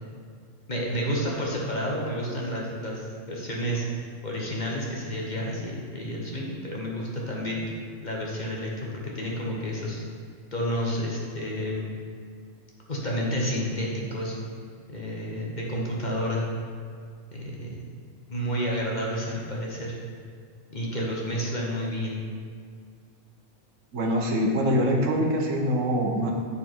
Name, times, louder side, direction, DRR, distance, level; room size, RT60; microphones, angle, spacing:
voice 1, 0.7-3.8 4.2-7.6 8.0-10.0 10.5-11.9 12.9-14.4 14.9-16.4 17.3-18.0 18.3-20.0 20.7-22.2, equal, 35° left, -3 dB, 1.1 m, -30 dB
voice 2, 23.9-26.3, equal, 70° right, 1 dB, 1.2 m, -24 dB
9.2 x 4.1 x 4.5 m, 2.1 s
omnidirectional pair, 1.4 m